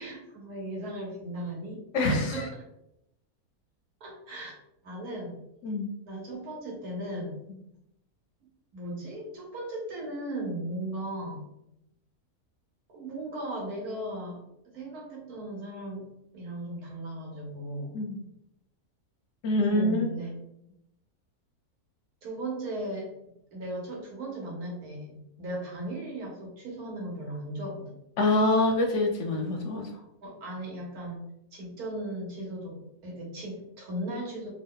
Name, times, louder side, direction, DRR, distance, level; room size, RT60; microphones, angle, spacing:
voice 1, 0.0-2.6 4.0-4.6 4.8-5.4 6.1-7.4 8.7-11.4 12.9-14.4 14.7-16.1 16.3-18.0 19.6-20.3 22.2-23.1 23.5-27.9 30.2-31.2 31.5-34.5, right 1 dB, 75° right, -2 dB, 1.6 m, -37 dB
voice 2, 1.9-2.5 5.6-5.9 17.9-18.2 19.4-20.1 28.2-29.9, left 2 dB, 65° left, 3 dB, 0.7 m, -25 dB
3.5 x 2.3 x 3.7 m, 0.82 s
omnidirectional pair, 1.6 m